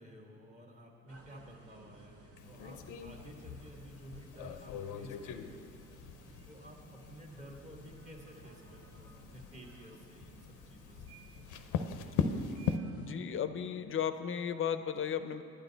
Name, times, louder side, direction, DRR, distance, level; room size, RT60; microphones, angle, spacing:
voice 1, 0.0-5.7 6.5-11.0, equal, 25° right, 0 dB, 1.5 m, -53 dB
sound 1, 1.1-13.1, right 4 dB, 50° right, 0.9 m, -57 dB
sound 2, 2.4-12.8, left 6 dB, 90° left, 0.6 m, -40 dB
voice 2, 13.0-15.4, left 8 dB, 45° left, 11 dB, 0.5 m, -35 dB
9.6 x 9.1 x 4.0 m, 2.7 s
cardioid pair, 90°, 30 cm